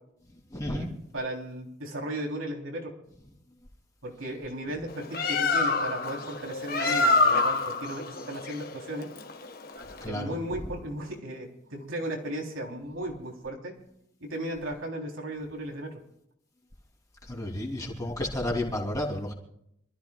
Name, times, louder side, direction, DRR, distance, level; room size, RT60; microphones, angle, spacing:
voice 1, 0.5-0.9 10.0-10.4 17.3-19.3, left 1 dB, 15° left, -1 dB, 3.0 m, -31 dB
voice 2, 1.1-2.9 4.0-9.1 10.1-13.7 14.2-16.0, right 1 dB, 90° right, 0 dB, 3.5 m, -35 dB
Bird, 4.9-10.1, left 3 dB, 45° left, 1.5 m, -26 dB
27.5 x 14.0 x 2.4 m, 0.76 s
head